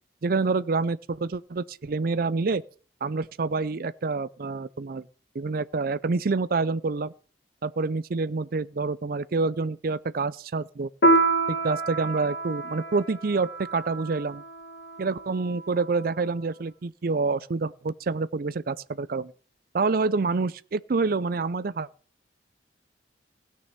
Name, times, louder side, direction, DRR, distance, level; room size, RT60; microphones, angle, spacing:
voice 1, 0.2-2.6 3.0-5.0 5.3-7.1 7.6-10.9 11.5-14.4 15.0-19.3 19.7-21.9, right 4 dB, 55° right, 0.5 m, -27 dB
Piano, 11.0-16.0, right 2 dB, 70° left, 1.8 m, -27 dB
16.5 x 6.5 x 6.7 m
head